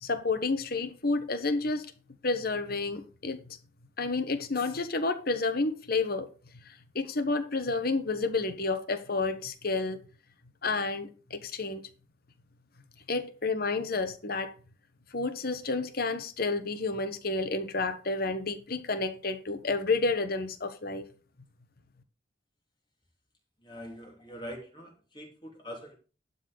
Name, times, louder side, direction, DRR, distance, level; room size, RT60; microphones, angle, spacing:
voice 1, 0.0-1.9 2.2-3.4 4.0-6.3 6.6-10.0 10.6-11.9 13.1-14.5 15.1-21.1, left 3 dB, 50° left, 1.3 m, -30 dB
voice 2, 23.6-25.9, equal, 25° left, 2.9 m, -43 dB
12.0 x 4.2 x 6.7 m
head